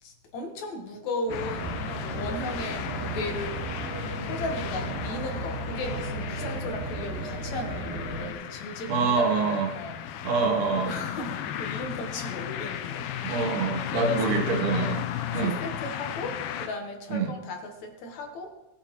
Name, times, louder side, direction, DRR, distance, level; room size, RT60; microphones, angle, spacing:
voice 1, 0.0-1.8 2.1-3.6 4.2-10.3 10.7-13.5 13.9-14.4 14.7-14.9 15.4-18.5, left 2 dB, 65° left, 3 dB, 2.5 m, -36 dB
sound 1, 1.3-16.7, left 10 dB, 90° left, 2.2 m, -35 dB
sound 2, 1.3-8.3, right 2 dB, 50° right, 3.5 m, -34 dB
voice 2, 8.9-9.7 10.2-10.9 13.2-15.1 15.3-15.6 17.1-17.3, right 5 dB, 85° right, 3 dB, 2.9 m, -26 dB
18.0 x 8.9 x 3.1 m, 0.94 s
omnidirectional pair, 3.6 m